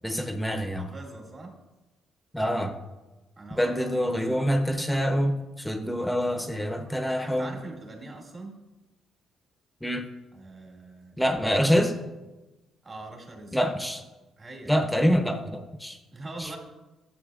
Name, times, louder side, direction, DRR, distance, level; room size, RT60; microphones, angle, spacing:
voice 1, 0.0-0.9 2.3-2.8 3.5-7.6 9.8-10.1 11.2-11.9 13.5-14.0 14.7-16.0 16.4-16.6, equal, 5° left, 4 dB, 0.8 m, -26 dB
voice 2, 0.8-1.5 3.4-4.2 7.2-8.6 10.3-11.5 12.8-13.6 14.4-14.9 16.1-16.6, right 2 dB, 40° right, -1 dB, 2.2 m, -43 dB
12.0 x 7.4 x 2.4 m, 1.1 s
cardioid pair, 90°, 0 cm